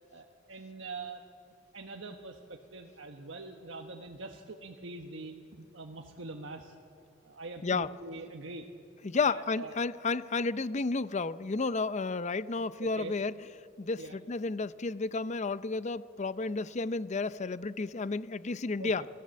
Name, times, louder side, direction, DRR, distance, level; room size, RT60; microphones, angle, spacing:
voice 1, 0.1-1.3 1.7-6.7 7.2-8.7 9.2-9.8 12.8-13.1 14.0-14.2 18.8-19.1, right 3 dB, 80° right, 3 dB, 1.3 m, -44 dB
voice 2, 9.0-13.3 13.8-19.0, left 3 dB, 40° left, 15 dB, 0.6 m, -32 dB
27.5 x 17.0 x 7.7 m, 2.6 s
head